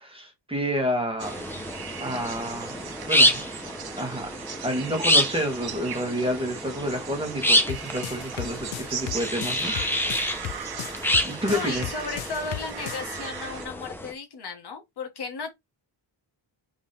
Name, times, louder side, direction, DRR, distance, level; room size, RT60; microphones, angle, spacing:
voice 1, 0.0-1.3 2.0-2.8 3.1-3.4 4.0-4.3 4.6-9.7 11.2-11.8, equal, 10° right, 1.5 m, -29 dB
sound 1, 1.2-14.1, equal, 5° left, 0.7 m, -28 dB
sound 2, 1.2-13.7, right 8 dB, 55° right, 0.8 m, -38 dB
sound 3, 7.7-13.1, left 14 dB, 80° left, 0.5 m, -35 dB
voice 2, 11.5-15.5, left 4 dB, 55° left, 1.3 m, -35 dB
3.7 x 3.1 x 4.1 m
wide cardioid pair, 135°, 46 cm